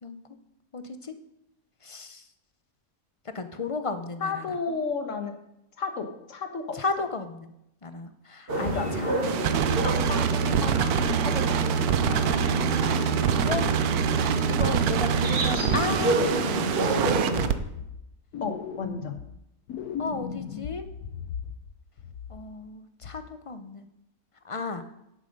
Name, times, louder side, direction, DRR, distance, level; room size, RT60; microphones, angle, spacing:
voice 1, 0.7-1.1 1.8-2.2 3.3-4.4 6.7-7.5 7.8-9.2 12.2-13.7 14.5-17.3 20.0-20.9 22.3-23.8 24.4-24.8, left 3 dB, 35° left, 9 dB, 0.5 m, -34 dB
voice 2, 4.2-5.3 5.8-6.8 8.7-8.9 9.5-11.8 18.4-19.1, left 4 dB, 55° left, 6 dB, 1.6 m, -33 dB
sound 1, 8.5-17.5, right 2 dB, 40° right, 1.8 m, -28 dB
sound 2, 9.2-17.5, right 9 dB, 85° right, 1.2 m, -26 dB
sound 3, 17.3-18.1 18.3-19.4 19.7-21.7 22.0-22.7 23.0-23.3, left 7 dB, 80° left, 1.2 m, -37 dB
10.5 x 8.5 x 5.3 m, 0.82 s
omnidirectional pair, 1.6 m